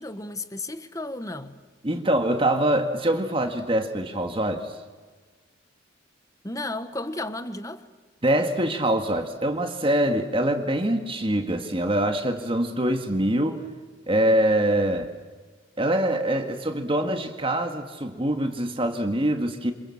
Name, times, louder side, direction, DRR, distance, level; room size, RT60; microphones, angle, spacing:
voice 1, 0.0-1.6 6.4-7.9, left 2 dB, 15° left, 1.3 m, -33 dB
voice 2, 1.8-4.8 8.2-13.6 14.1-15.1 15.8-19.7, right 1 dB, 25° right, 1.9 m, -24 dB
29.0 x 27.0 x 7.3 m
head